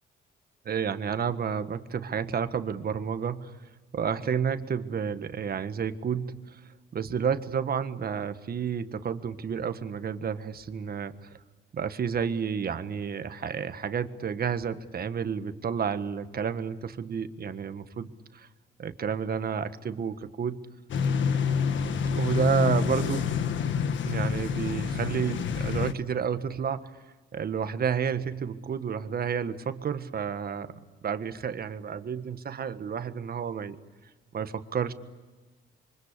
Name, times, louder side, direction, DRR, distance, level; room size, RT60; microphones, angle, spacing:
voice 1, 0.6-3.5 3.9-6.6 6.9-11.3 11.7-18.5 18.8-20.6 22.1-23.3 24.0-26.9 27.3-30.7 31.0-33.8 34.3-34.9, right 7 dB, 50° right, 10 dB, 1.6 m, -30 dB
sound 1, 20.9-25.9, left 6 dB, 70° left, 1.5 m, -27 dB
27.5 x 24.5 x 8.3 m, 1.3 s
cardioid pair, 90°, 20 cm